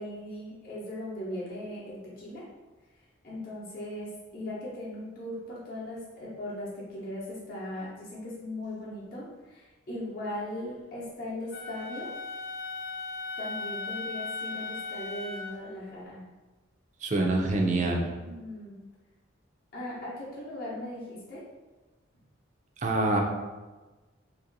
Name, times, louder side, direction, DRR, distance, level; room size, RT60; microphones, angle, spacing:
voice 1, 0.0-2.4 3.2-12.1 13.4-16.2 18.2-18.8 19.7-21.4, left 1 dB, 45° left, -8 dB, 0.9 m, -38 dB
Wind instrument woodwind instrument, 11.5-15.6, left 3 dB, 65° left, 0.4 m, -37 dB
voice 2, 17.0-18.1 22.8-23.2, right 2 dB, 35° right, 1 dB, 0.5 m, -25 dB
2.9 x 2.7 x 4.0 m, 1.2 s
head